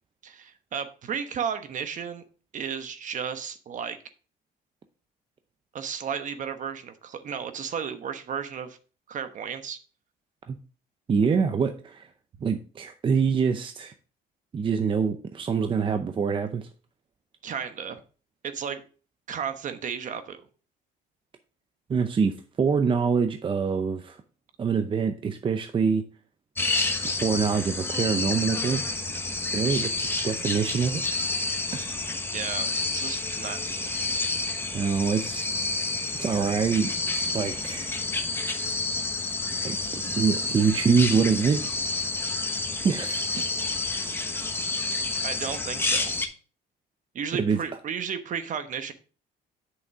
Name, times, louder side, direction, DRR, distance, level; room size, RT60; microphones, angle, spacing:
voice 1, 0.2-2.2 2.5-4.0 5.7-8.8 9.1-9.8 17.4-18.0 18.4-18.8 19.3-20.4 32.3-34.0 45.2-46.1 47.1-48.9, right 7 dB, 50° right, 9 dB, 1.1 m, -33 dB
voice 2, 11.1-12.1 12.4-13.9 14.5-16.7 21.9-24.2 24.6-26.0 27.0-28.8 29.5-31.0 31.7-32.1 34.7-35.5 36.2-36.9 37.3-37.9 39.6-41.6 42.8-43.7 47.3-47.6, right 6 dB, 30° right, 8 dB, 0.6 m, -25 dB
sound 1, 26.6-46.2, left 3 dB, 15° left, 1.1 m, -29 dB
8.2 x 6.4 x 3.5 m, 0.36 s
cardioid pair, 110°, 17 cm